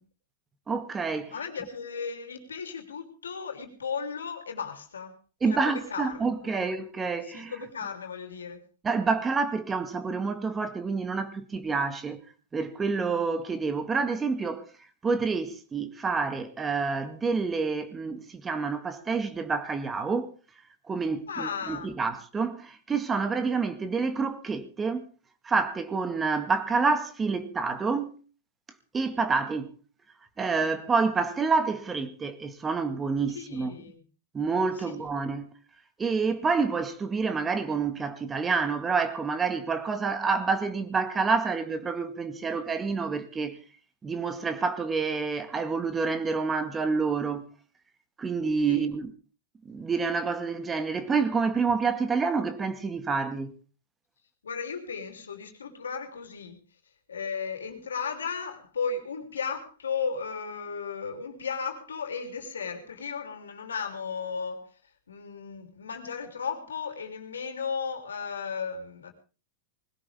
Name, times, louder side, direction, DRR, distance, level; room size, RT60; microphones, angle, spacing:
voice 1, 0.7-1.3 5.4-7.5 8.8-12.2 12.5-14.7 15.0-20.3 20.9-25.1 25.4-28.2 28.9-29.7 30.4-33.8 34.3-35.5 36.0-43.6 44.0-47.5 48.2-49.1 49.7-53.5, right 4 dB, 20° right, 1.9 m, -28 dB
voice 2, 1.3-5.1 5.5-6.6 7.2-8.6 21.3-21.9 33.3-34.0 34.8-35.0 48.7-48.8 54.4-56.6 57.1-64.7 65.1-69.1, left 5 dB, 85° left, 3.4 m, -35 dB
20.5 x 17.0 x 3.6 m
hypercardioid pair, 105°, 0 cm